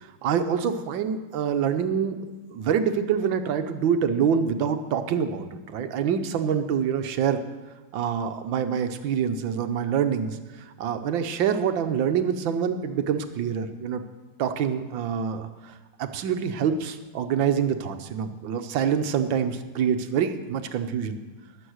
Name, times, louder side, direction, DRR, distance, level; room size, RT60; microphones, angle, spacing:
voice 1, 0.0-2.2 2.5-7.4 7.9-10.4 10.8-14.0 14.4-15.7 16.0-21.2, right 7 dB, 75° right, 9 dB, 1.6 m, -26 dB
20.0 x 7.7 x 6.4 m, 1.2 s
omnidirectional pair, 2.2 m